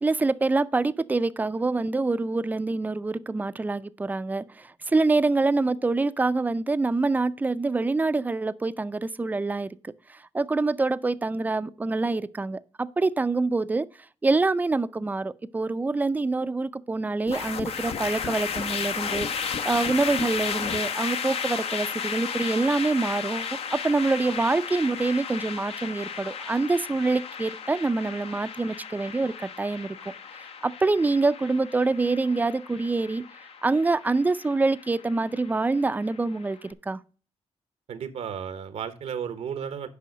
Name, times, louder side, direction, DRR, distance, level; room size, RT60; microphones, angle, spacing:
voice 1, 0.0-9.7 10.1-13.9 14.2-30.0 30.6-33.2 33.6-37.0, right 3 dB, 15° right, 0.5 m, -26 dB
sound 1, 17.3-36.5, left 6 dB, 65° left, 0.9 m, -34 dB
voice 2, 37.9-39.9, right 8 dB, 75° right, 0.9 m, -33 dB
8.4 x 5.6 x 5.1 m
wide cardioid pair, 125°, 11 cm